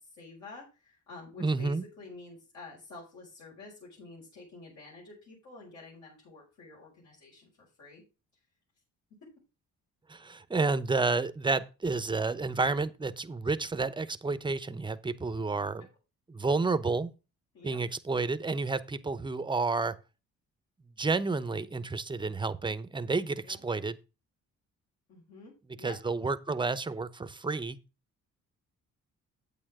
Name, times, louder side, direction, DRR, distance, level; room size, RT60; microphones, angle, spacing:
voice 1, 0.0-7.5 7.8-8.0 9.2-9.3 17.5-17.8 23.4-23.6 25.1-26.0, left 3 dB, 65° left, 5.6 m, -49 dB
voice 2, 1.4-1.8 10.1-15.9 16.3-17.1 17.6-19.9 21.0-24.0 25.8-27.8, right 3 dB, 15° right, 0.8 m, -30 dB
9.0 x 8.5 x 3.6 m
cardioid pair, 90°, 30 cm